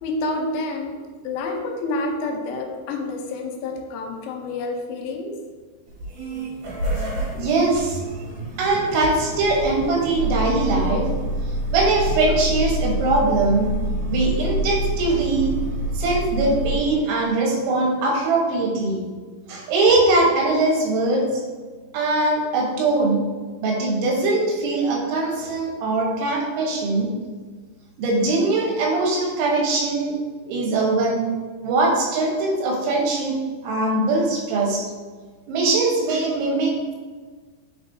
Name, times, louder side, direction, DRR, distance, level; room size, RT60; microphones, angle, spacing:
voice 1, 0.0-1.0 1.2-5.3, left 2 dB, 90° left, 3 dB, 3.1 m, -28 dB
sound 1, 5.9-16.8, right 1 dB, 60° right, 2.2 m, -27 dB
voice 2, 7.3-8.0 8.6-11.1 11.7-13.7 14.1-15.5 16.0-19.0 19.5-21.4 21.9-23.2 23.6-27.1 28.0-30.2 30.5-31.3 31.6-33.4 33.6-34.8 35.5-37.0, right 2 dB, 90° right, -1 dB, 3.6 m, -21 dB
8.6 x 4.3 x 2.7 m, 1.4 s
omnidirectional pair, 5.2 m